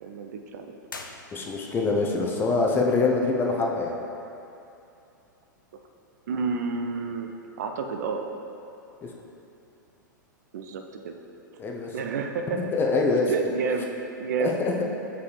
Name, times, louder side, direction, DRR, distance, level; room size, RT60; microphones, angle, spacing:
voice 1, 0.0-0.8 6.3-7.3 7.6-8.3 10.5-11.2 11.9-12.7 13.3-13.9 14.2-14.6, right 5 dB, 55° right, 4 dB, 0.5 m, -30 dB
sound 1, 0.8-1.9, left 3 dB, 80° left, 0.5 m, -42 dB
voice 2, 1.3-4.0 9.0-9.1 11.6-11.9 12.7-13.3 14.4-14.9, left 3 dB, 20° left, 0 dB, 0.7 m, -24 dB
6.7 x 4.8 x 3.2 m, 2.7 s
figure-of-eight pair, 100°, 11 cm